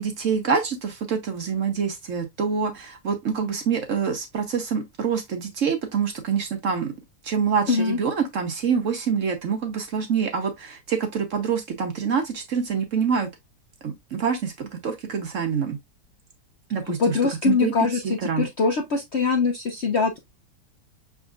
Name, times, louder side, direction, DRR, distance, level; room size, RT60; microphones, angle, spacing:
voice 1, 0.0-6.9 7.2-13.3 13.8-15.8 16.7-17.2 17.5-17.7 18.0-18.5, right 6 dB, 55° right, 0.9 m, -26 dB
voice 2, 7.7-8.0 17.0-20.2, left 4 dB, 60° left, 0.7 m, -23 dB
6.3 x 3.5 x 2.4 m
omnidirectional pair, 1.9 m